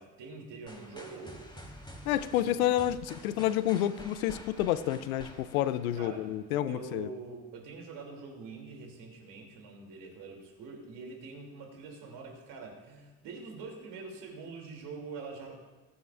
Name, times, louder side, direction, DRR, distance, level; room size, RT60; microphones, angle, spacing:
voice 1, 0.0-1.4 2.3-2.6 5.9-6.3 6.7-15.6, right 4 dB, 70° right, 1 dB, 3.0 m, -45 dB
sound 1, 0.7-6.6, equal, 10° left, 3.5 m, -49 dB
voice 2, 2.1-7.1, left 12 dB, 90° left, 15 dB, 0.5 m, -29 dB
20.0 x 9.7 x 2.5 m, 1.2 s
hypercardioid pair, 45°, 41 cm